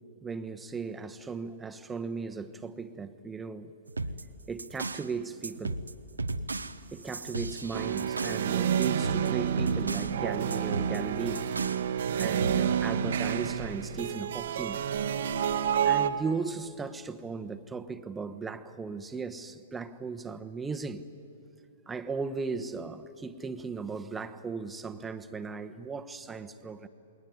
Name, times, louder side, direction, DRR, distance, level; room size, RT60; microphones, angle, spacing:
voice 1, 0.2-3.7 4.5-5.8 6.9-11.5 12.2-14.8 15.8-21.0 21.9-26.9, right 4 dB, 10° right, 1.2 m, -37 dB
sound 1, 3.9-5.1 5.4-8.5 8.8-10.2 10.5-11.9 12.2-12.6, right 2 dB, 90° right, 0.9 m, -36 dB
sound 2, 7.7-16.1, right 8 dB, 65° right, 1.2 m, -29 dB
28.5 x 21.0 x 9.7 m
figure-of-eight pair, 115°, 0 cm